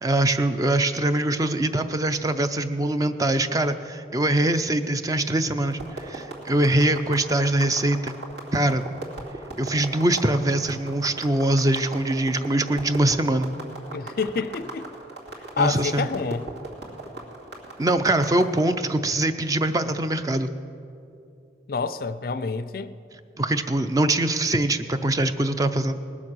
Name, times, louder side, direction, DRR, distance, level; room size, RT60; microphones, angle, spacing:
voice 1, 0.0-8.1 8.5-8.8 9.6-13.5 15.6-16.1 17.8-20.5 23.4-26.0, right 1 dB, 20° right, 0.4 m, -23 dB
sound 1, 5.7-18.6, right 2 dB, 75° right, 2.5 m, -38 dB
voice 2, 13.9-14.9 15.6-16.5 21.7-23.0, left 4 dB, 55° left, 0.4 m, -28 dB
20.0 x 7.3 x 6.2 m
head